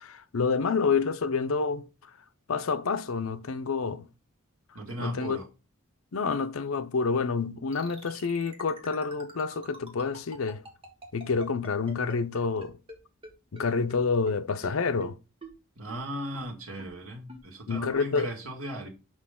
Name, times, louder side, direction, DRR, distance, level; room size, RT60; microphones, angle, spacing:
voice 1, 0.0-1.9 2.5-4.1 5.0-5.4 6.1-10.6 11.1-12.8 13.5-15.2 17.7-18.3, left 4 dB, 80° left, 0.6 m, -28 dB
voice 2, 4.7-5.5 15.8-18.9, right 1 dB, 90° right, 2.0 m, -37 dB
sound 1, 7.7-12.9 13.2-13.3 13.6-13.7 13.9-14.0 14.3-14.4 14.6-14.7 15.0-15.1 15.4-15.5 15.9-16.0 16.3-16.4 16.8-16.9 17.3-17.4 17.8-17.9, right 1 dB, 25° right, 1.6 m, -44 dB
6.4 x 5.0 x 3.7 m
head